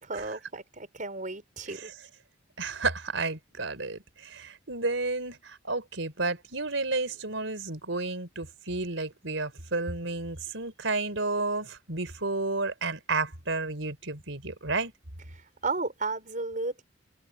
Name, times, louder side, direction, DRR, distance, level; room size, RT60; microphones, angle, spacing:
voice 1, 0.0-1.9 15.6-16.8, right 3 dB, 45° right, 5.7 m, -33 dB
voice 2, 2.6-14.9, right 3 dB, 75° right, 4.5 m, -31 dB
head